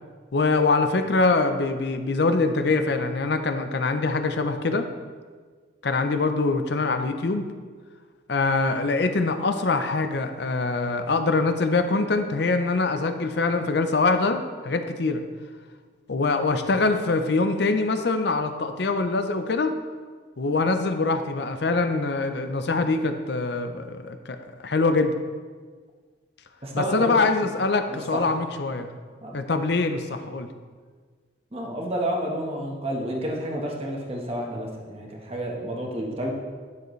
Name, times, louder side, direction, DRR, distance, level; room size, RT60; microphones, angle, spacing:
voice 1, 0.3-4.9 5.8-7.4 8.3-15.2 16.1-19.8 20.4-25.1 26.7-28.9 29.3-30.5, left 3 dB, 60° left, 8 dB, 0.6 m, -24 dB
voice 2, 26.6-27.2 27.9-28.4 29.2-29.4 31.5-36.3, right 1 dB, 30° right, -1 dB, 1.3 m, -30 dB
10.5 x 6.7 x 3.2 m, 1.5 s
head